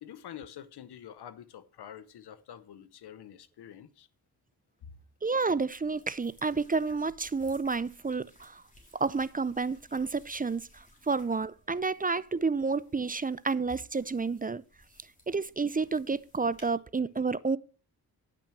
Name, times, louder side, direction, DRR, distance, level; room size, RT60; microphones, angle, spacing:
voice 1, 0.0-4.1 4.8-5.0, left 9 dB, 90° left, 0.8 m, -47 dB
sound 1, 5.2-16.7, left 1 dB, 20° left, 3.7 m, -61 dB
voice 2, 5.2-8.6 8.9-14.6 15.3-17.6, right 4 dB, 25° right, 0.5 m, -30 dB
10.0 x 6.1 x 6.2 m
cardioid pair, 50°, 38 cm